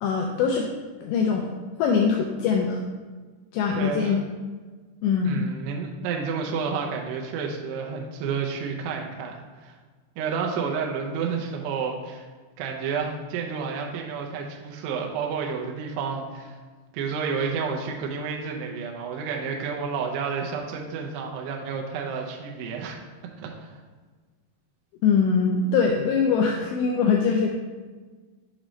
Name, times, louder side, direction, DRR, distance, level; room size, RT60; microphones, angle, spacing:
voice 1, 0.0-0.7 1.0-2.8 3.5-4.2 5.0-5.5 25.0-27.5, left 5 dB, 85° left, 1 dB, 2.5 m, -23 dB
voice 2, 3.8-4.2 5.2-9.7 10.2-12.3 12.6-16.6 16.9-23.0 23.4-23.7, right 5 dB, 80° right, 1 dB, 2.4 m, -30 dB
7.3 x 3.1 x 5.0 m, 1.4 s
omnidirectional pair, 5.5 m